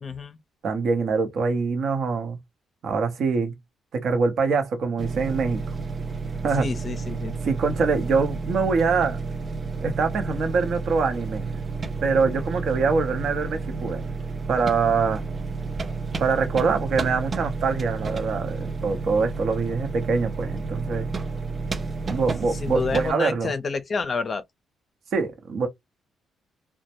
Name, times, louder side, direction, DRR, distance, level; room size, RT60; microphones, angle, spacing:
voice 1, 0.0-0.4 6.6-7.4 22.5-24.4, left 4 dB, 40° left, 0.5 m, -29 dB
voice 2, 0.6-2.4 2.8-3.5 3.9-5.6 6.4-6.7 7.4-9.2 9.8-11.6 12.0-14.0 14.5-15.2 16.2-21.1 22.1-23.5 25.1-25.7, right 4 dB, 65° right, 0.8 m, -24 dB
sound 1, 5.0-23.1, right 4 dB, 35° right, 0.4 m, -31 dB
2.1 x 2.1 x 2.8 m
cardioid pair, 90°, 0 cm